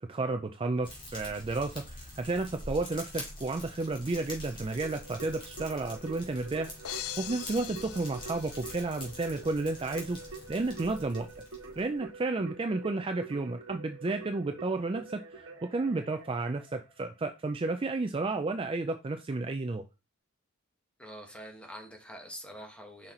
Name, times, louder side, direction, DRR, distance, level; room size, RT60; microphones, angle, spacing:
voice 1, 0.1-10.2 10.5-11.3 11.8-19.8, right 3 dB, 25° right, 6 dB, 0.4 m, -32 dB
Fire, 0.8-12.0, left 1 dB, 25° left, 2.3 m, -45 dB
Keyboard (musical), 4.8-17.3, right 4 dB, 65° right, 1.3 m, -47 dB
sound 1, 6.8-9.1, left 13 dB, 80° left, 0.5 m, -42 dB
voice 2, 21.0-23.1, equal, 5° left, 2 dB, 1.3 m, -45 dB
5.7 x 4.3 x 3.8 m, 0.27 s
head